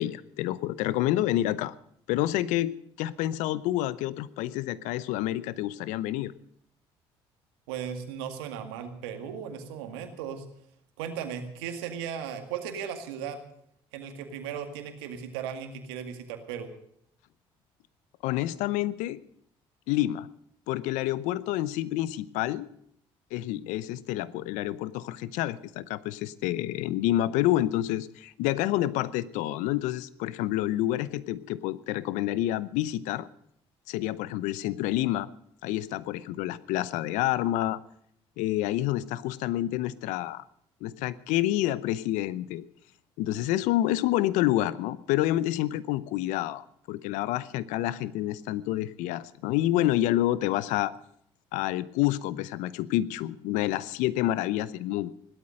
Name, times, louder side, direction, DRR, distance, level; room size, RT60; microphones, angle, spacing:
voice 1, 0.0-1.7 2.1-6.3 18.2-19.2 19.9-20.3 20.7-22.7 23.3-33.3 33.9-35.3 35.6-37.8 38.4-40.4 40.8-42.6 43.2-50.9 51.5-55.1, left 14 dB, 80° left, 18 dB, 0.8 m, -28 dB
voice 2, 7.7-10.5 11.0-13.4 13.9-16.7, right 8 dB, 90° right, 7 dB, 2.1 m, -36 dB
17.0 x 12.5 x 6.4 m, 0.70 s
hypercardioid pair, 60°, 13 cm